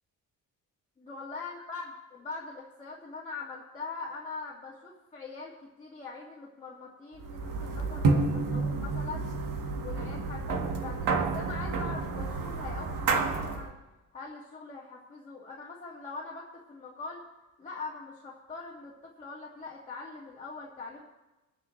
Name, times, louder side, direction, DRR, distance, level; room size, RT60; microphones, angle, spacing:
voice 1, 1.0-9.3 9.8-13.7 14.1-17.2 17.6-21.0, left 4 dB, 20° left, -5 dB, 1.8 m, -42 dB
sound 1, 7.2-13.7, right 4 dB, 65° right, 1.5 m, -30 dB
25.0 x 9.3 x 3.1 m, 1.1 s
cardioid pair, 160°, 35 cm